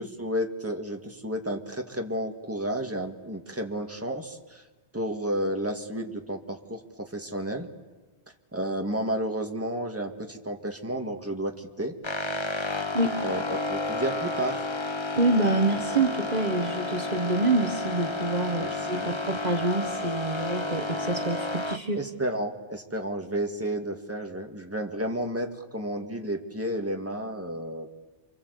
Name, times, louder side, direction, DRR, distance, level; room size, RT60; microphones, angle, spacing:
voice 1, 0.0-4.6 4.9-7.7 8.5-11.9 13.2-14.6 18.6-19.1 22.0-27.9, right 1 dB, 10° right, 3 dB, 2.0 m, -32 dB
sound 1, 12.0-21.8, left 2 dB, 25° left, 1.0 m, -31 dB
voice 2, 15.2-22.0, right 2 dB, 40° right, 5 dB, 1.4 m, -26 dB
28.0 x 25.0 x 8.3 m, 1.3 s
omnidirectional pair, 1.2 m